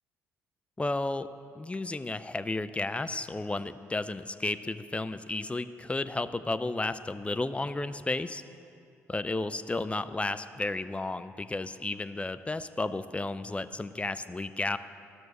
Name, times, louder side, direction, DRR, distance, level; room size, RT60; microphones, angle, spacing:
voice 1, 0.8-1.3 1.6-8.4 9.1-14.8, left 2 dB, 15° left, 12 dB, 0.5 m, -33 dB
12.5 x 6.2 x 6.6 m, 2.4 s
hypercardioid pair, 45°, 7 cm